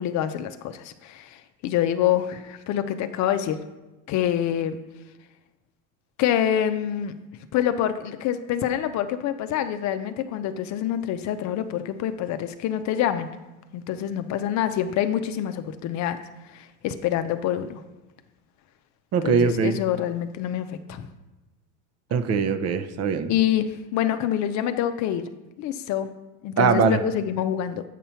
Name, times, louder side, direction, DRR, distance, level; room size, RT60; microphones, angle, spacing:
voice 1, 0.0-3.6 4.1-4.8 6.2-7.1 7.5-13.3 13.7-16.2 16.5-17.8 19.2-21.1 23.3-25.3 25.6-26.1 26.4-27.8, left 10 dB, 45° left, 10 dB, 0.6 m, -26 dB
voice 2, 19.1-19.8 22.1-23.3 26.6-27.0, right 5 dB, 40° right, 10 dB, 0.7 m, -21 dB
8.3 x 5.5 x 4.4 m, 1.1 s
supercardioid pair, 110°, 39 cm